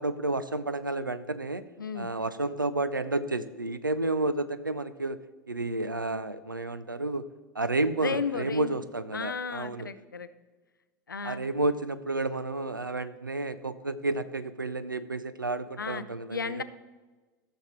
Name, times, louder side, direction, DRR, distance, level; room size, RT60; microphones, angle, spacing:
voice 1, 0.0-1.6 2.0-5.2 5.5-7.2 7.5-9.9 11.2-16.6, right 2 dB, 90° right, 13 dB, 0.5 m, -31 dB
voice 2, 1.8-2.1 8.0-8.7 9.1-10.3 11.1-11.4 15.8-16.6, left 5 dB, 80° left, 13 dB, 0.5 m, -34 dB
14.0 x 6.6 x 3.1 m, 1.3 s
figure-of-eight pair, 85°, 11 cm